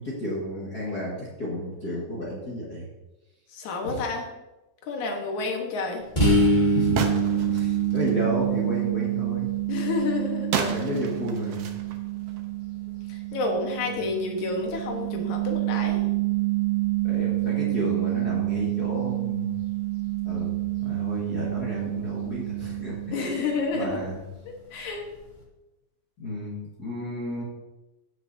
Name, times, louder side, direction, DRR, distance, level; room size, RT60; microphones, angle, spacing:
voice 1, 0.0-2.9 3.8-4.0 6.7-9.5 10.6-11.7 17.0-19.6 20.2-22.9 23.2-23.4 23.7-24.2 26.2-27.4, equal, 40° left, -6 dB, 1.6 m, -32 dB
voice 2, 3.5-4.3 4.9-6.0 9.7-10.6 13.1-16.0 23.1-24.0 24.4-25.1, left 3 dB, 65° left, 2 dB, 2.5 m, -29 dB
sound 1, 6.2-23.7, right 7 dB, 20° left, 1.3 m, -27 dB
sound 2, 6.9-8.2 10.5-12.6, right 6 dB, 80° right, 1.4 m, -32 dB
16.5 x 6.2 x 2.7 m, 1.0 s
omnidirectional pair, 4.0 m